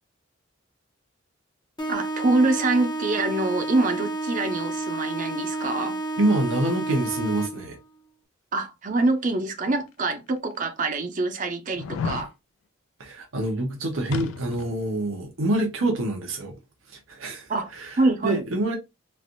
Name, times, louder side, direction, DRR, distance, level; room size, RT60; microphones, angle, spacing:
sound 1, 1.8-7.8, right 2 dB, 20° left, 0.7 m, -30 dB
voice 1, 1.9-6.0 8.5-12.3 17.5-17.7 18.0-18.5, right 2 dB, 40° right, 0.5 m, -25 dB
voice 2, 6.2-7.8 13.0-16.5 17.1-18.8, right 1 dB, 85° right, 0.9 m, -26 dB
sound 2, 9.8-9.9 10.5-10.6 11.7-12.3 14.1-14.8 15.1-15.2, left 5 dB, 85° left, 0.3 m, -32 dB
3.2 x 2.5 x 2.5 m
head